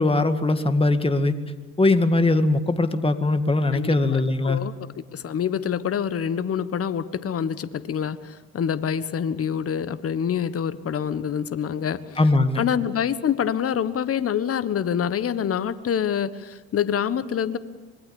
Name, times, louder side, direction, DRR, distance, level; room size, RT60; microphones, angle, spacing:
voice 1, 0.0-1.4 1.8-4.6 12.2-12.6, left 2 dB, 15° left, 9 dB, 2.0 m, -20 dB
voice 2, 3.7-12.2 12.6-17.6, left 8 dB, 40° left, 14 dB, 1.4 m, -26 dB
25.5 x 21.5 x 7.1 m, 1.2 s
hypercardioid pair, 65°, 37 cm